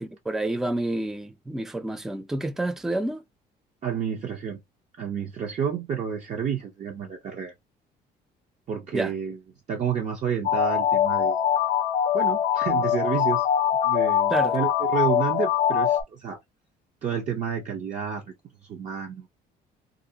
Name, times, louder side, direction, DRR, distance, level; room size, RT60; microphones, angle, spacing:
voice 1, 0.0-3.2 8.9-9.1 14.3-14.6, right 1 dB, ahead, 0.3 m, -29 dB
voice 2, 3.8-4.6 5.0-7.5 8.7-9.4 9.7-11.4 12.1-13.5 13.8-16.4 17.0-18.3 18.7-19.3, right 7 dB, 45° right, 0.6 m, -30 dB
sound 1, 10.4-16.0, left 9 dB, 55° left, 0.5 m, -23 dB
2.5 x 2.1 x 2.7 m
cardioid pair, 110°, 17 cm